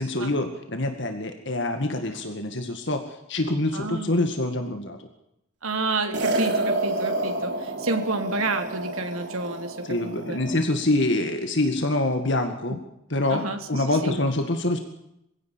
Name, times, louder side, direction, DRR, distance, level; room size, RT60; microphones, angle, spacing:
voice 1, 0.0-5.0 9.8-12.8 13.1-13.4 13.7-14.8, left 2 dB, 55° left, 5 dB, 2.1 m, -25 dB
voice 2, 3.7-4.1 5.6-9.9 10.2-10.6 13.3-13.6 14.0-14.2, right 3 dB, 80° right, 6 dB, 3.2 m, -29 dB
sound 1, 6.1-10.6, right 2 dB, 55° right, 3.5 m, -29 dB
23.5 x 16.5 x 8.5 m, 0.82 s
head